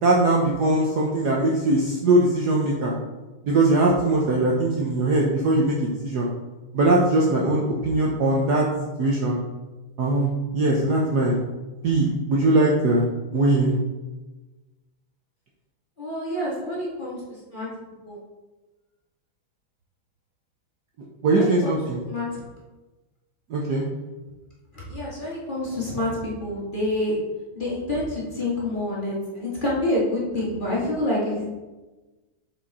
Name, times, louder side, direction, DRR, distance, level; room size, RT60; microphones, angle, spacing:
voice 1, 0.0-2.9 3.4-6.3 6.7-8.7 9.0-9.4 10.0-11.4 11.8-13.1 13.3-13.8 21.2-22.0 23.5-23.8, right 2 dB, 60° right, -2 dB, 1.2 m, -21 dB
voice 2, 16.0-17.2 17.5-17.7 18.0-18.2 21.2-21.8 22.1-22.3 24.7-27.2 27.6-31.4, left 1 dB, 25° left, -6 dB, 1.8 m, -27 dB
7.6 x 4.8 x 4.1 m, 1.2 s
omnidirectional pair, 2.4 m